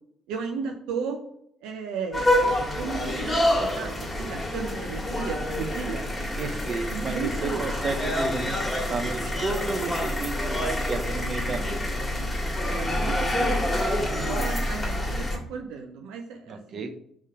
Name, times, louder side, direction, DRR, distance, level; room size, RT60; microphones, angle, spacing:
voice 1, 0.3-1.2 1.6-2.3 2.8-6.0 6.9-7.7 12.6-16.9, right 5 dB, 65° right, 2 dB, 0.8 m, -34 dB
sound 1, 2.1-15.4, left 1 dB, 20° left, 2.7 m, -27 dB
voice 2, 6.4-8.6 8.9-11.8 16.5-16.9, right 3 dB, 45° right, 7 dB, 1.0 m, -32 dB
5.5 x 5.0 x 6.3 m, 0.69 s
figure-of-eight pair, 50°, 0 cm